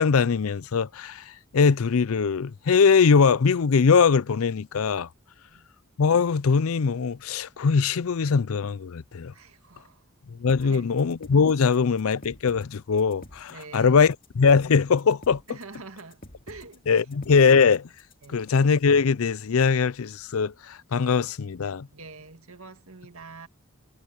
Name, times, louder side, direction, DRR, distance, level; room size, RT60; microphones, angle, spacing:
voice 1, 0.0-5.1 6.0-9.3 10.3-15.4 16.9-17.9 18.3-21.9, left 5 dB, 75° left, 0.5 m, -21 dB
voice 2, 9.3-10.0 10.6-11.0 13.5-14.0 15.5-16.8 18.2-18.5 21.9-23.5, right 3 dB, 75° right, 2.1 m, -45 dB
sound 1, 10.5-18.5, left 1 dB, 40° left, 2.6 m, -48 dB
head